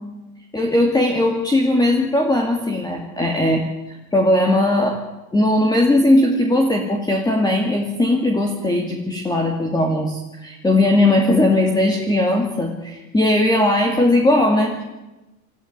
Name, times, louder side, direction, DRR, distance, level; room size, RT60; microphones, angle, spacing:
voice 1, 0.5-3.6 4.1-5.0 5.3-14.8, left 1 dB, 10° left, 1 dB, 2.4 m, -18 dB
19.0 x 14.5 x 9.4 m, 1.0 s
hypercardioid pair, 115°, 42 cm